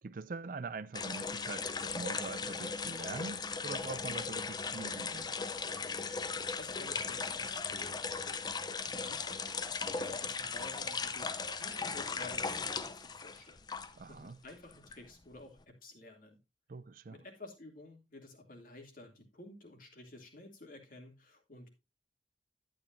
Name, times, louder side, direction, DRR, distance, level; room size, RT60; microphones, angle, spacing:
voice 1, 0.0-5.3 14.0-14.4 16.7-17.2, right 3 dB, 50° right, 0.4 m, -43 dB
sound 1, 0.9-14.1 14.4-15.6, left 5 dB, 25° left, 0.5 m, -38 dB
voice 2, 6.0-9.5 9.8-16.4 17.1-21.7, left 2 dB, 50° left, 2.5 m, -53 dB
11.5 x 8.8 x 2.6 m
head